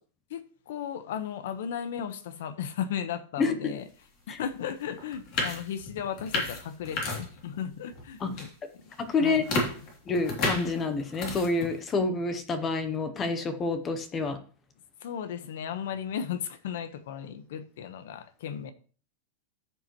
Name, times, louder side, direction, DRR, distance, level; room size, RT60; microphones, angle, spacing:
voice 1, 0.3-3.8 4.3-8.9 9.2-9.6 15.0-18.7, left 8 dB, 70° left, 1.1 m, -35 dB
voice 2, 3.4-3.7 4.3-4.4 8.2-8.4 9.0-9.4 10.1-14.4, left 3 dB, 15° left, 0.8 m, -28 dB
sound 1, 4.4-4.5 5.0-7.6 7.9-8.5 8.9-11.8, left 2 dB, 35° left, 2.9 m, -32 dB
13.5 x 7.0 x 3.1 m
supercardioid pair, 170°, 0 cm